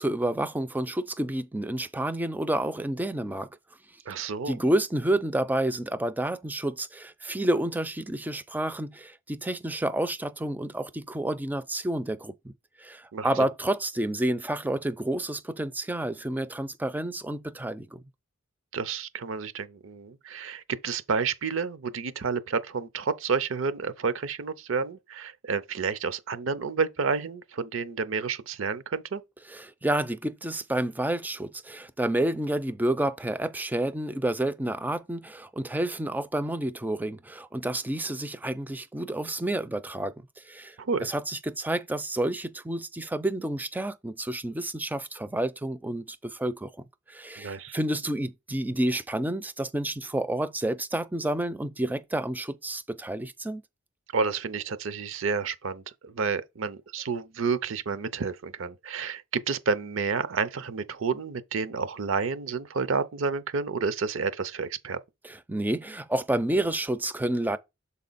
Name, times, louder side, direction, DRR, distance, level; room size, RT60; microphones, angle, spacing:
voice 1, 0.0-3.5 4.1-12.5 12.8-18.0 29.5-40.8 41.0-53.6 65.2-67.6, right 1 dB, 10° right, 0.4 m, -29 dB
voice 2, 4.1-4.6 13.1-13.3 18.7-29.2 40.8-41.1 47.4-47.8 54.1-65.0, right 5 dB, 70° right, 0.6 m, -30 dB
6.7 x 4.2 x 4.0 m
head